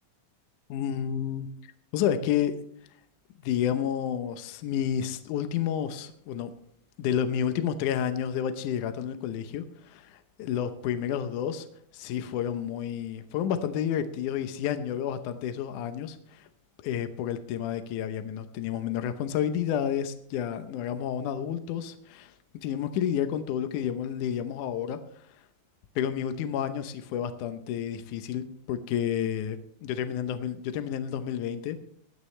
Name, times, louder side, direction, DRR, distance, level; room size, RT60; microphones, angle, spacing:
voice 1, 0.7-2.5 3.4-6.5 7.0-11.7 11.9-16.5 16.8-22.3 22.6-25.4 26.0-31.8, left 9 dB, 70° left, 9 dB, 2.1 m, -30 dB
18.5 x 12.5 x 3.3 m, 0.66 s
omnidirectional pair, 4.3 m